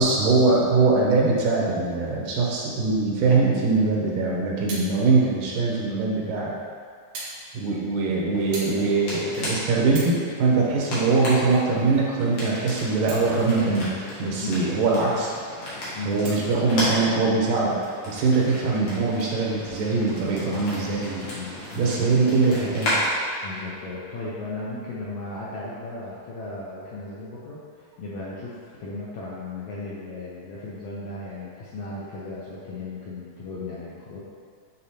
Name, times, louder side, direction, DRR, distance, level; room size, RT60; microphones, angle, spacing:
voice 1, 0.0-6.5 7.5-13.9 14.2-15.3 16.1-17.8 18.1-21.3 21.8-22.9, right 3 dB, 80° right, -3 dB, 2.5 m, -22 dB
sound 1, 4.6-4.9 5.8-5.9 7.1-7.4 7.7-7.9 8.5-8.8 9.3-9.4 9.8-10.2 10.8-11.8 13.0-13.7 14.1-14.2 16.2-16.7 17.5-17.7, right 2 dB, 65° right, 2.4 m, -38 dB
sound 2, 8.3-23.0, equal, 55° left, 2.4 m, -34 dB
voice 2, 21.3-22.1 23.4-34.2, left 2 dB, 70° left, -7 dB, 1.5 m, -36 dB
8.5 x 4.0 x 2.9 m, 2.2 s
omnidirectional pair, 3.7 m